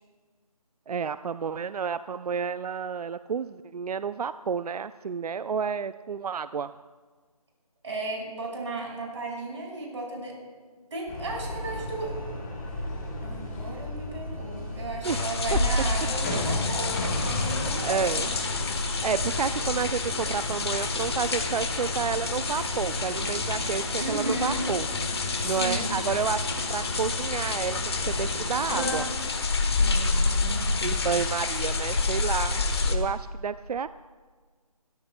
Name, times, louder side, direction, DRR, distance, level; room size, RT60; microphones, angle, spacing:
voice 1, 0.9-6.7 15.0-15.2 15.5-15.6 17.8-18.3 19.0-24.9 25.4-27.8 28.1-29.1 30.8-33.9, right 6 dB, 80° right, 14 dB, 0.4 m, -30 dB
voice 2, 7.8-10.3 10.9-12.1 13.2-18.3 24.0-24.7 25.4-26.0 29.8-31.2, right 2 dB, 50° right, -1 dB, 5.1 m, -35 dB
sound 1, 11.1-29.0, left 1 dB, 25° left, 4.8 m, -33 dB
sound 2, 15.0-32.9, left 4 dB, 40° left, 1.2 m, -29 dB
26.0 x 13.0 x 2.2 m, 1.5 s
figure-of-eight pair, 165°, 20 cm